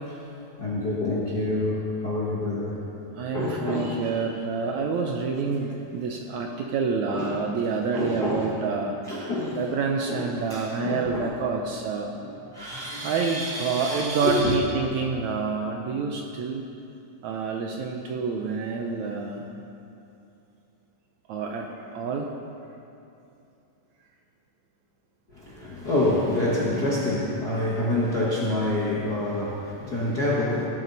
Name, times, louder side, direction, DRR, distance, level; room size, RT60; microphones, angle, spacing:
voice 1, 0.6-2.8 3.3-4.0 7.1-7.3 7.9-8.5 9.1-9.6 10.1-11.3 12.3-14.5 25.3-30.6, left 1 dB, 45° left, -6 dB, 1.3 m, -27 dB
voice 2, 3.1-9.0 9.6-12.2 13.0-16.6 17.2-19.4 21.3-22.3, right 5 dB, 70° right, 2 dB, 1.9 m, -28 dB
19.0 x 12.5 x 4.1 m, 2.7 s
omnidirectional pair, 4.0 m